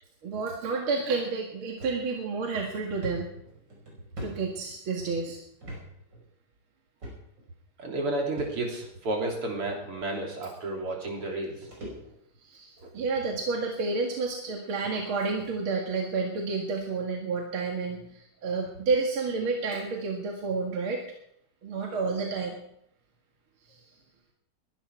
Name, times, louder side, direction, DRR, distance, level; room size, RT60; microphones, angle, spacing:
voice 1, 0.2-3.3 4.2-5.4 12.4-21.0 21.6-22.6, right 4 dB, 70° right, 0 dB, 2.7 m, -30 dB
sound 1, 1.8-2.0 2.4-2.5 3.0-5.1 5.6-5.8 6.1-6.2 7.0-7.5 8.4-8.9 9.8-9.9 10.9-11.0 11.2-12.4 12.8-13.1 13.9-14.0 14.5-14.6 14.8-15.0 15.4-15.6, right 1 dB, 50° right, 6.3 m, -42 dB
voice 2, 7.8-11.7 12.8-12.9, right 2 dB, 85° right, 0 dB, 4.2 m, -32 dB
21.0 x 12.0 x 4.7 m, 0.73 s
omnidirectional pair, 2.4 m